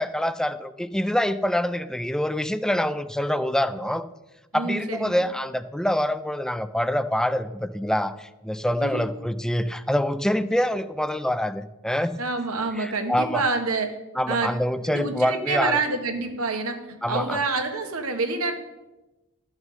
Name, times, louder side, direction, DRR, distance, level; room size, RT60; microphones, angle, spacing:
voice 1, 0.0-4.0 4.5-12.2 12.8-13.4 14.2-15.8 17.0-17.4, left 1 dB, 5° left, 13 dB, 0.4 m, -25 dB
voice 2, 4.5-5.1 8.8-9.0 12.2-13.9 14.3-14.5 14.8-16.8 17.1-18.6, right 3 dB, 80° right, 5 dB, 1.5 m, -27 dB
12.5 x 6.4 x 6.4 m, 1.0 s
head